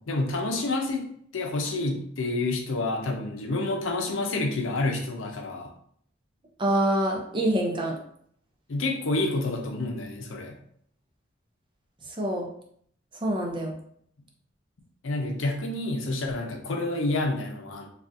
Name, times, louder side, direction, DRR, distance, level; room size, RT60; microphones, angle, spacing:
voice 1, 0.1-1.1 1.3-5.7 8.7-10.5 15.0-17.9, left 2 dB, 90° left, 2 dB, 0.6 m, -28 dB
voice 2, 6.6-8.0 12.2-12.5 13.2-13.7, right 1 dB, 25° right, 0 dB, 0.6 m, -25 dB
3.6 x 2.4 x 2.6 m, 0.64 s
head